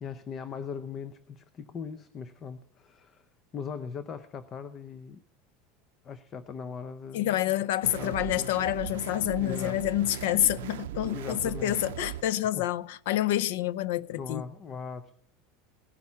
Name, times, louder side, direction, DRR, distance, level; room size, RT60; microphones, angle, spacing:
voice 1, 0.0-3.2 3.5-5.2 6.0-7.3 8.0-8.5 9.4-9.8 11.0-11.8 12.6-12.7 14.2-15.1, left 6 dB, 30° left, 0.6 m, -39 dB
voice 2, 7.1-14.5, left 13 dB, 75° left, 0.5 m, -28 dB
sound 1, 7.8-12.2, right 13 dB, 90° right, 0.5 m, -38 dB
18.0 x 10.5 x 5.7 m
supercardioid pair, 145°, 0 cm